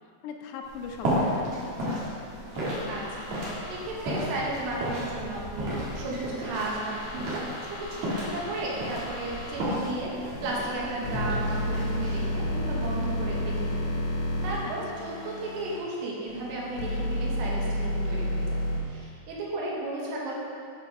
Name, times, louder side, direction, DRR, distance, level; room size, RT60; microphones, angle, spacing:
voice 1, 0.2-2.1 14.6-15.0, left 6 dB, 85° left, 4 dB, 2.6 m, -41 dB
sound 1, 0.6-14.7, equal, 60° right, 2.2 m, -34 dB
sound 2, 2.5-3.9 6.7-9.6 10.4-15.8 16.3-18.8, left 1 dB, 60° left, 1.6 m, -32 dB
voice 2, 2.9-14.0 14.4-18.5 18.9-20.4, right 2 dB, 80° right, -4 dB, 3.2 m, -34 dB
8.0 x 4.3 x 5.2 m, 2.4 s
omnidirectional pair, 4.9 m